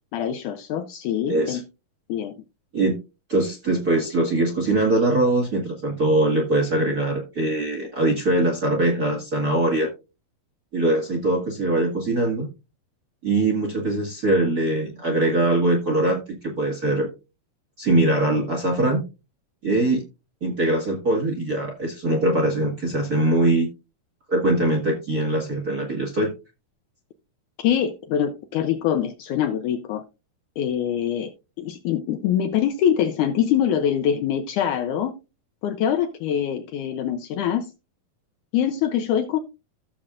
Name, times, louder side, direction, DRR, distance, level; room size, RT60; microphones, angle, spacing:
voice 1, 0.1-1.6 2.1-2.3 27.6-30.0 30.6-31.3 31.6-35.1 35.6-37.7 38.5-39.4, left 9 dB, 80° left, 1.8 m, -24 dB
voice 2, 1.3-1.6 2.7-3.0 3.3-9.9 10.7-12.5 13.2-17.1 17.8-19.0 19.6-20.0 20.4-23.7 24.3-26.3, right 2 dB, 40° right, 1.4 m, -22 dB
15.5 x 7.2 x 2.4 m
omnidirectional pair, 4.3 m